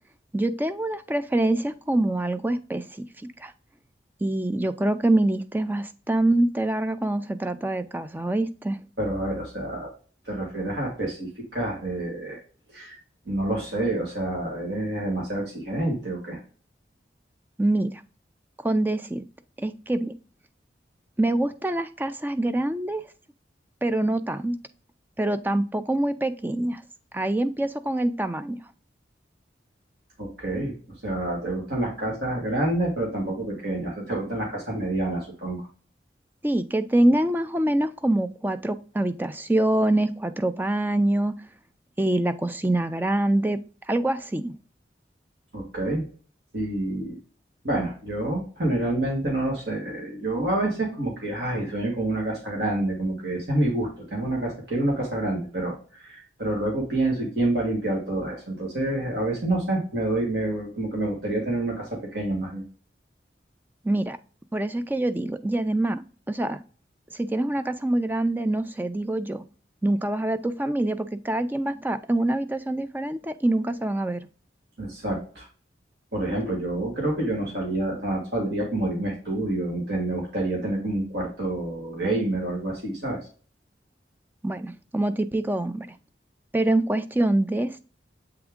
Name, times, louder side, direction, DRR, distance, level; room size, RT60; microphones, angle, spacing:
voice 1, 0.3-3.5 4.2-8.8 17.6-17.9 18.6-19.2 19.6-20.1 21.2-23.0 23.8-24.6 25.2-26.8 27.1-28.6 36.4-41.3 42.0-43.6 43.9-44.5 63.8-64.2 64.5-66.0 66.3-66.6 67.1-69.4 69.8-74.2 84.4-85.9 86.5-87.8, right 1 dB, 10° right, 11 dB, 0.3 m, -25 dB
voice 2, 9.0-9.9 10.3-12.4 12.7-13.0 13.3-16.4 30.2-30.7 31.0-35.7 45.5-46.0 46.5-47.2 47.6-62.6 74.8-75.5 76.1-83.2, right 1 dB, 65° right, -2 dB, 1.7 m, -28 dB
7.8 x 3.5 x 3.6 m, 0.40 s
head